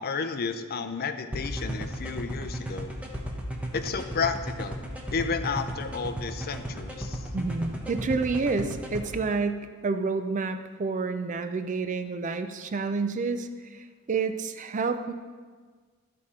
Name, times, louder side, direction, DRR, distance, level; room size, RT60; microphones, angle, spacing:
voice 1, 0.0-2.9 3.7-4.8 5.1-7.3, left 5 dB, 45° left, 9 dB, 0.5 m, -32 dB
sound 1, 1.3-9.0, right 1 dB, 5° right, 0.8 m, -34 dB
voice 2, 7.3-15.1, right 4 dB, 35° right, 8 dB, 0.4 m, -29 dB
12.5 x 4.3 x 4.8 m, 1.5 s
head